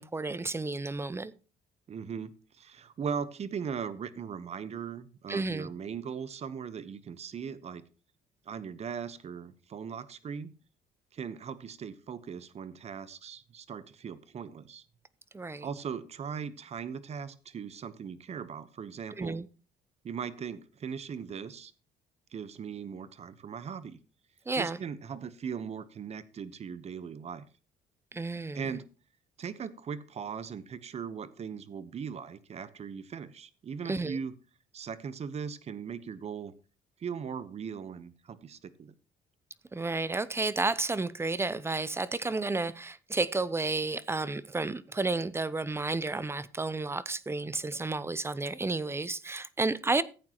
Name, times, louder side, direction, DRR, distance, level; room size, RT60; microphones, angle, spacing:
voice 1, 0.0-1.3 5.3-5.7 15.3-15.7 19.2-19.5 24.5-24.8 28.1-28.8 33.9-34.2 39.7-50.0, right 3 dB, 15° right, 0.6 m, -31 dB
voice 2, 1.9-7.8 8.5-10.5 11.1-14.8 15.6-19.4 20.0-21.7 22.3-24.0 24.6-27.5 28.5-28.9 29.4-34.3 34.7-36.5 37.0-38.9, right 7 dB, 40° right, 1.0 m, -39 dB
14.5 x 8.7 x 3.0 m
cardioid pair, 110°, 17 cm